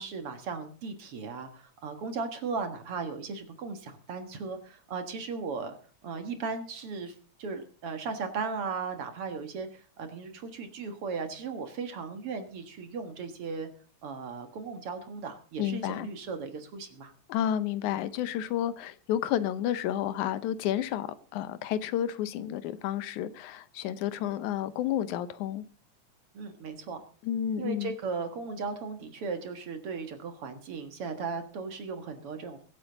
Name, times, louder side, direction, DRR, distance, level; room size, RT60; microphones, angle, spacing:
voice 1, 0.0-5.7 6.0-7.1 7.4-13.7 14.0-17.1 26.3-27.0 27.6-32.6, right 4 dB, 55° right, 2.2 m, -37 dB
voice 2, 15.6-16.1 17.3-25.6 27.2-27.9, left 11 dB, 85° left, 2.3 m, -31 dB
23.0 x 8.0 x 3.9 m
omnidirectional pair, 3.3 m